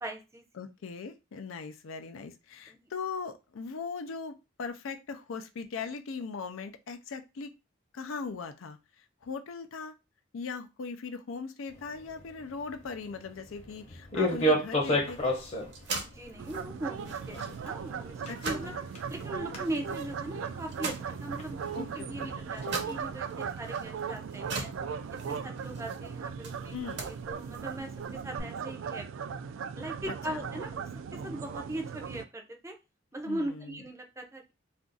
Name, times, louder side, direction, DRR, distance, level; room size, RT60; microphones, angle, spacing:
voice 1, 0.0-0.4 2.7-2.9 16.1-18.7 19.1-24.7 25.3-26.8 27.1-29.4 29.8-32.8 33.1-34.5, right 1 dB, 15° right, 4 dB, 0.5 m, -40 dB
voice 2, 0.6-7.5 7.9-9.9 10.3-15.4 18.3-18.8 21.7-22.3 26.7-27.0 30.0-30.4 33.2-33.8, left 5 dB, 90° left, 8 dB, 0.5 m, -40 dB
sound 1, 11.7-23.1, equal, 35° left, 0.8 m, -35 dB
sound 2, 15.1-28.4, right 3 dB, 60° right, 0.7 m, -43 dB
Ben Shewmaker - Griffey Park Geese, 16.4-32.2, right 6 dB, 75° right, 0.3 m, -38 dB
2.5 x 2.4 x 3.8 m, 0.27 s
head